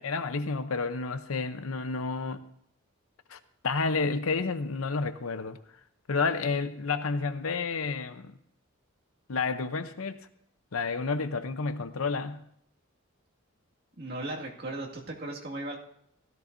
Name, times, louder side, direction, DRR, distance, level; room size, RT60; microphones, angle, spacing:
voice 1, 0.0-2.4 3.3-3.4 3.6-5.6 6.1-8.4 9.3-10.2 10.7-12.4, left 4 dB, 85° left, 0.7 m, -30 dB
voice 2, 14.0-15.8, right 2 dB, 45° right, 2.1 m, -36 dB
16.5 x 13.5 x 2.7 m
head